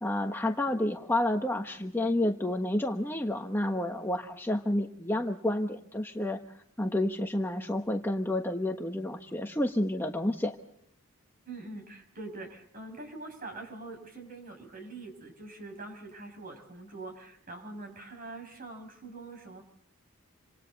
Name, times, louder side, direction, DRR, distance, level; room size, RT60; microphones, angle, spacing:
voice 1, 0.0-6.4 6.8-10.5, left 1 dB, 10° left, 3 dB, 1.2 m, -30 dB
voice 2, 11.4-19.6, right 2 dB, 40° right, 5 dB, 6.5 m, -44 dB
29.0 x 26.5 x 4.1 m, 0.68 s
head